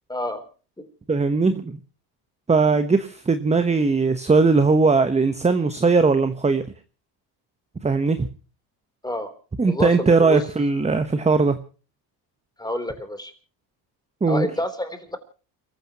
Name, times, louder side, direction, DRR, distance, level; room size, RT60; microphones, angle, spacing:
voice 1, 0.1-0.4 0.8-0.9 9.0-9.3 9.7-10.4 12.6-13.3 14.3-15.2, left 1 dB, 10° left, 9 dB, 3.5 m, -28 dB
voice 2, 1.1-1.8 2.5-6.6 7.8-8.3 9.6-11.6 14.2-14.5, right 4 dB, 15° right, 9 dB, 1.1 m, -19 dB
29.5 x 14.5 x 3.0 m, 0.36 s
supercardioid pair, 95°, 49 cm